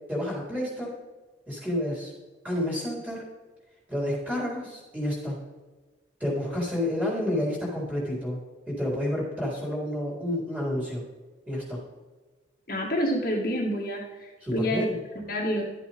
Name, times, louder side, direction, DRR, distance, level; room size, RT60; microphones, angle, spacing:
voice 1, 0.1-1.0 1.5-2.1 2.4-3.2 3.9-5.4 6.2-8.4 8.7-11.0 11.5-11.8 14.4-15.0, left 1 dB, 10° right, -5 dB, 4.0 m, -29 dB
voice 2, 12.7-14.9 15.3-15.6, equal, 45° left, -3 dB, 1.8 m, -28 dB
13.0 x 8.4 x 3.6 m, 1.3 s
head